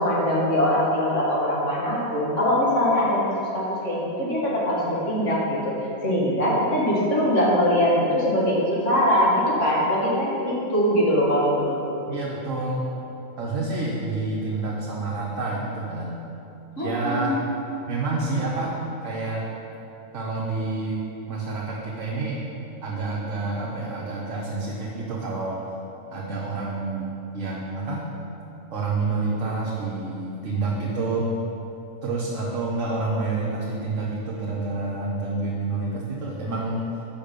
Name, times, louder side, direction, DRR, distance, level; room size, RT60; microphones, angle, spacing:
voice 1, 0.0-5.7 6.0-12.1 16.8-17.4, equal, 65° left, -6 dB, 1.9 m, -22 dB
voice 2, 12.1-12.8 13.4-16.2 16.8-17.3 17.9-18.8 19.0-19.4 20.1-21.0 21.3-22.4 22.8-25.6 26.1-28.0 28.7-31.3 32.0-36.9, right 3 dB, 70° right, -4 dB, 1.2 m, -28 dB
7.0 x 5.3 x 5.1 m, 2.9 s
omnidirectional pair, 1.4 m